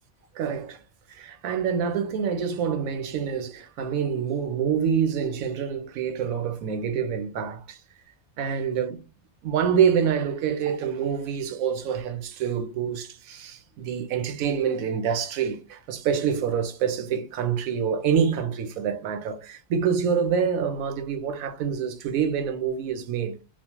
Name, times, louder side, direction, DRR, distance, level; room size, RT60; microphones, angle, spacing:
voice 1, 0.3-0.8 1.1-7.8 8.4-9.0 9.4-23.4, right 7 dB, 85° right, 1.1 m, -26 dB
3.1 x 2.1 x 2.9 m
omnidirectional pair, 1.4 m